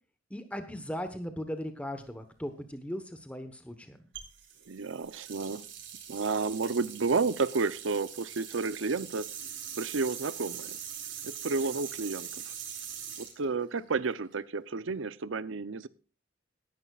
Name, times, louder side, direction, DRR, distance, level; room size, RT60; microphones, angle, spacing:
voice 1, 0.3-4.0, equal, 5° left, 8 dB, 1.1 m, -38 dB
sound 1, 4.1-14.3, right 9 dB, 70° right, 4.2 m, -42 dB
voice 2, 4.7-5.6 6.1-9.3 9.8-10.8 11.2-12.4 13.2-15.9, right 4 dB, 85° right, 16 dB, 0.7 m, -31 dB
18.5 x 11.0 x 2.4 m, 0.37 s
head